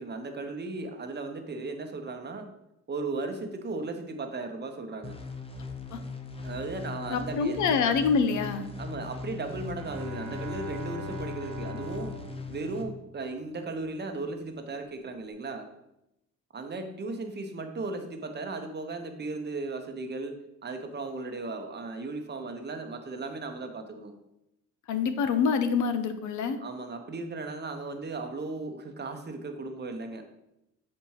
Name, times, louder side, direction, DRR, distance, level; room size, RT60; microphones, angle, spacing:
voice 1, 0.0-2.5 2.9-5.2 6.4-7.7 8.8-12.2 12.5-15.7 16.5-24.1 26.6-30.2, right 3 dB, 35° right, 6 dB, 0.8 m, -36 dB
sound 1, 5.0-12.8, left 4 dB, 20° left, 0.7 m, -40 dB
voice 2, 7.1-8.7 24.9-26.6, left 5 dB, 75° left, 10 dB, 0.6 m, -26 dB
Bowed string instrument, 9.7-13.4, equal, 70° right, 1.2 m, -41 dB
7.0 x 4.2 x 3.1 m, 0.86 s
cardioid pair, 90°, 30 cm